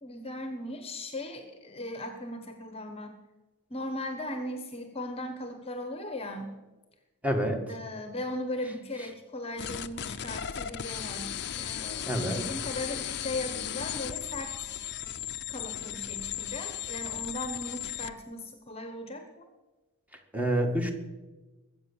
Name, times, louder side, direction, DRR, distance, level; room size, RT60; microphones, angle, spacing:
voice 1, 0.0-3.1 3.7-6.6 7.7-11.3 11.6-14.7 15.5-19.4, left 1 dB, 25° left, 7 dB, 1.2 m, -38 dB
voice 2, 7.2-7.6 12.1-12.4 20.3-20.9, right 1 dB, 5° right, 4 dB, 1.9 m, -27 dB
sound 1, 9.6-18.1, left 10 dB, 50° left, 0.7 m, -36 dB
21.5 x 8.2 x 7.1 m, 1.2 s
head